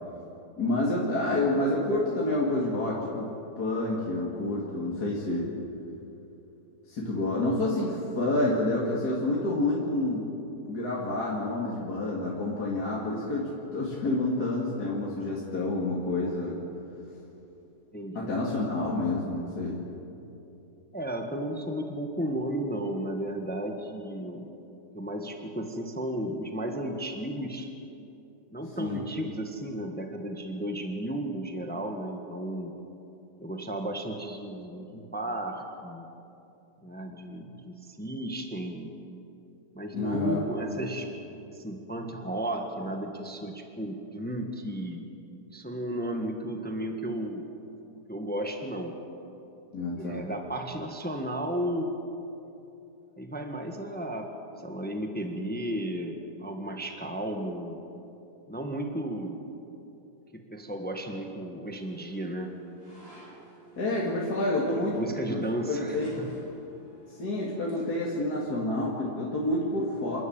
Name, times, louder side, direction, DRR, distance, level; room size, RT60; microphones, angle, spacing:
voice 1, 0.6-3.3 3.6-5.5 6.9-10.3 10.6-16.6 18.1-19.8 28.8-29.0 39.9-40.4 49.7-50.2 63.8-65.4 65.7-66.1 67.2-70.2, left 2 dB, 70° left, -5 dB, 3.1 m, -28 dB
voice 2, 17.9-18.3 20.9-24.5 24.9-27.7 28.5-32.7 33.4-36.1 36.8-39.0 39.7-41.1 41.5-45.1 45.5-47.5 48.1-48.9 50.0-52.0 53.2-57.8 58.5-59.4 60.3-62.5 64.0-64.2 64.8-66.3, right 1 dB, 5° left, 4 dB, 1.4 m, -34 dB
sound 1, 61.6-67.8, right 1 dB, 60° right, 7.7 m, -51 dB
28.5 x 12.5 x 8.9 m, 2.9 s
omnidirectional pair, 1.8 m